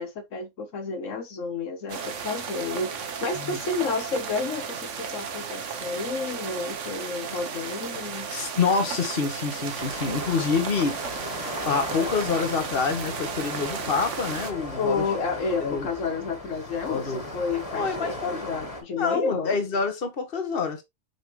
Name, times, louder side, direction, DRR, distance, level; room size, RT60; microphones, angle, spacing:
voice 1, 0.0-8.3 14.8-19.6, left 4 dB, 85° left, 1.5 m, -30 dB
sound 1, 1.9-14.5, right 6 dB, 75° right, 1.3 m, -34 dB
voice 2, 8.3-11.0 11.5-15.0 15.6-15.9 16.9-17.2 17.7-18.4 19.0-20.8, left 5 dB, 50° left, 1.6 m, -27 dB
sound 2, 9.8-18.8, left 1 dB, 30° left, 1.9 m, -37 dB
6.0 x 5.0 x 3.1 m
omnidirectional pair, 1.3 m